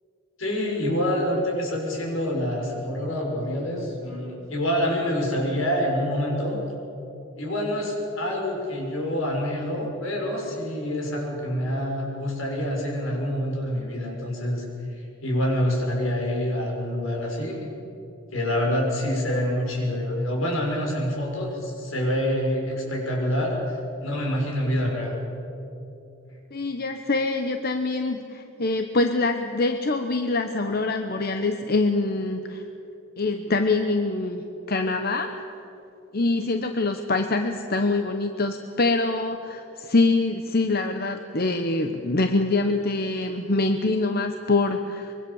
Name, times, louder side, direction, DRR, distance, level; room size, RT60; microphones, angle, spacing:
voice 1, 0.4-6.6 7.4-14.6 15.2-17.6 18.3-25.2, equal, 75° left, -1 dB, 6.6 m, -26 dB
voice 2, 26.5-32.6 33.2-34.4 34.7-35.4 36.1-45.1, left 3 dB, 45° left, 6 dB, 1.0 m, -24 dB
24.5 x 23.0 x 7.2 m, 2.9 s
head